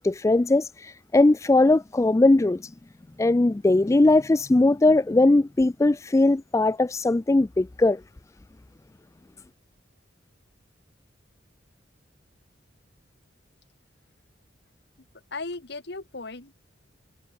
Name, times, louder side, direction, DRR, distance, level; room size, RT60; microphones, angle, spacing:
voice 1, 0.0-2.6 3.2-8.0, left 2 dB, 15° left, 0.3 m, -20 dB
voice 2, 15.3-16.5, left 3 dB, 65° left, 1.8 m, -36 dB
head